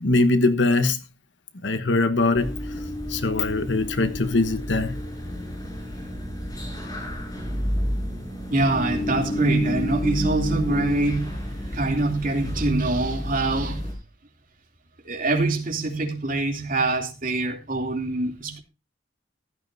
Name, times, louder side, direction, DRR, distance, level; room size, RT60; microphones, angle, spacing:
voice 1, 0.0-1.0 1.6-2.6 3.1-5.0, left 2 dB, 80° left, 1.2 m, -22 dB
sound 1, 2.3-13.9, equal, 20° left, 5.5 m, -30 dB
voice 2, 8.5-11.4 11.7-13.9 15.0-18.6, right 2 dB, 50° right, 2.9 m, -24 dB
15.5 x 12.5 x 2.7 m
head